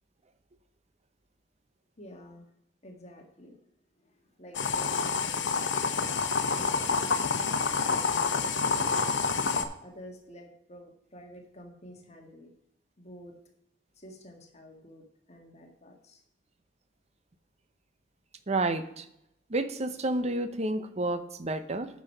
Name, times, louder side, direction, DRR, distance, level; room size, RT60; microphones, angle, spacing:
voice 1, 2.0-2.4 2.8-3.6 4.0-4.1 4.4-6.0 6.6-9.2 9.8-12.5 13.0-13.3 14.0-16.2, equal, 35° left, 3 dB, 1.7 m, -50 dB
sound 1, 4.5-9.6, left 5 dB, 90° left, 0.8 m, -28 dB
voice 2, 18.5-19.0 19.5-21.9, right 2 dB, 35° right, 11 dB, 0.7 m, -30 dB
8.9 x 6.2 x 5.5 m, 0.80 s
head